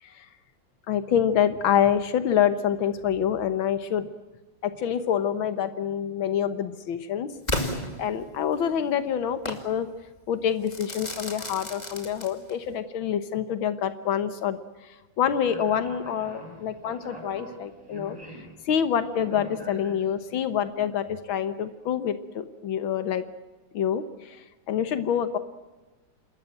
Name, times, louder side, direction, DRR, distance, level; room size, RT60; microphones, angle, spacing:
voice 1, 0.9-4.1 4.6-7.3 8.0-9.9 10.3-14.6 15.2-18.2 18.7-23.2 23.7-24.4 24.7-25.4, left 9 dB, 90° left, 11 dB, 1.9 m, -26 dB
Crackle / Fireworks, 7.5-8.6 9.5-9.7 10.7-12.7, left 1 dB, 20° left, 2.5 m, -33 dB
Speech, 15.3-20.4, right 1 dB, 10° right, 5.2 m, -44 dB
27.5 x 14.0 x 9.1 m, 1.1 s
omnidirectional pair, 2.1 m